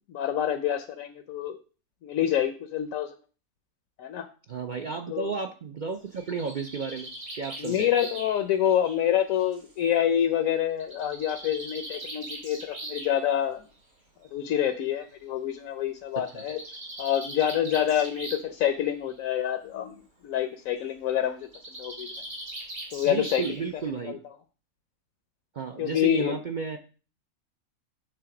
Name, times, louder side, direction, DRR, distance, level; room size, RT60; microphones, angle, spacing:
voice 1, 0.1-1.6 2.0-3.1 4.0-4.3 5.1-5.3 7.6-13.6 14.3-16.6 17.0-19.9 20.2-21.5 21.8-22.1 22.9-23.6 24.1-24.2 25.8-26.4, left 10 dB, 75° left, 7 dB, 1.0 m, -27 dB
voice 2, 4.5-7.1 7.4-7.9 16.2-16.4 23.0-24.2 25.5-26.8, right 5 dB, 60° right, 5 dB, 0.5 m, -33 dB
Bird, 5.9-9.7 10.8-13.2 14.2-14.3 14.7-14.8 15.0-15.1 16.2-18.6 18.9-19.3 21.4-23.9, right 1 dB, 75° right, 3.5 m, -41 dB
7.6 x 3.7 x 5.9 m, 0.37 s
omnidirectional pair, 1.5 m